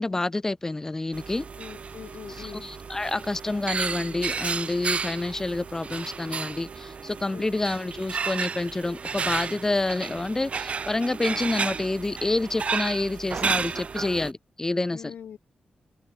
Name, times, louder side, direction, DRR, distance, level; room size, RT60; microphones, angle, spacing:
voice 1, 0.0-1.5 2.3-15.1, left 2 dB, 15° left, 0.4 m, -28 dB
sound 1, 1.1-14.3, right 5 dB, 45° right, 2.0 m, -32 dB
voice 2, 1.6-2.7 7.3-7.5 14.9-15.4, left 8 dB, 85° left, 1.4 m, -42 dB
wide cardioid pair, 130°, 3 cm